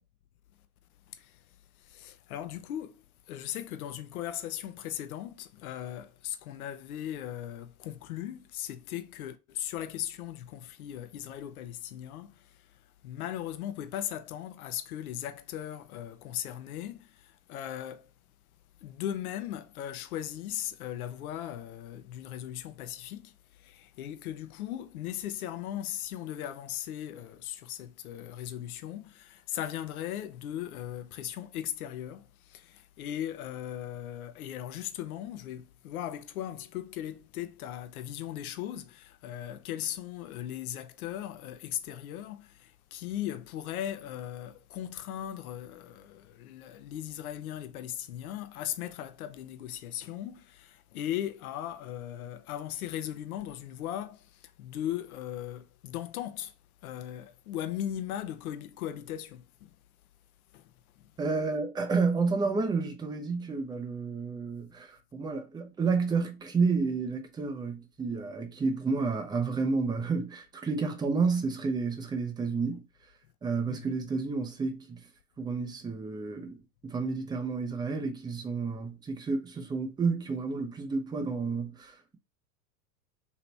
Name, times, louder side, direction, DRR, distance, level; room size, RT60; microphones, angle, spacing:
voice 1, 1.1-1.4 1.8-12.6 13.0-18.1 18.8-56.5 56.8-59.7 60.5-60.6 61.0-61.1 73.7-73.9, left 11 dB, 65° left, 0.7 m, -38 dB
voice 2, 61.2-72.8 73.4-75.1 75.4-76.6 76.8-82.2, right 4 dB, 10° right, 0.5 m, -30 dB
2.9 x 2.9 x 3.2 m
hypercardioid pair, 90°, 47 cm